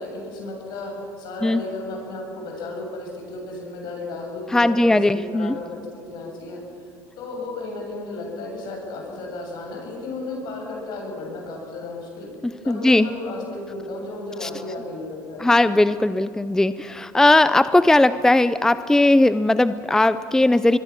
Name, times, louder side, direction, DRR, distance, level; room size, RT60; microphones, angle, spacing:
voice 1, 0.0-6.6 7.2-12.3 12.6-15.5, left 2 dB, 65° left, 1 dB, 7.8 m, -34 dB
voice 2, 4.5-5.6 12.7-13.1 14.4-14.5 15.4-20.8, left 2 dB, 5° left, 14 dB, 0.5 m, -18 dB
25.5 x 22.0 x 6.1 m, 2.6 s
supercardioid pair, 100°, 8 cm